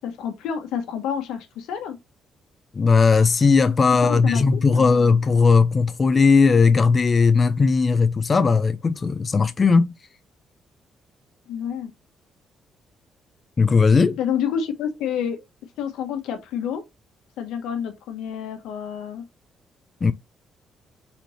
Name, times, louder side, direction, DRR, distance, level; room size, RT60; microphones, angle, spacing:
voice 1, 0.0-2.0 3.9-5.2 11.5-11.9 14.2-15.4 15.8-16.8 17.4-19.2, left 8 dB, 90° left, 1.0 m, -29 dB
voice 2, 2.7-10.0 13.6-14.2 20.0-20.1, left 4 dB, 35° left, 0.4 m, -17 dB
4.2 x 3.1 x 4.1 m
cardioid pair, 90°, 0 cm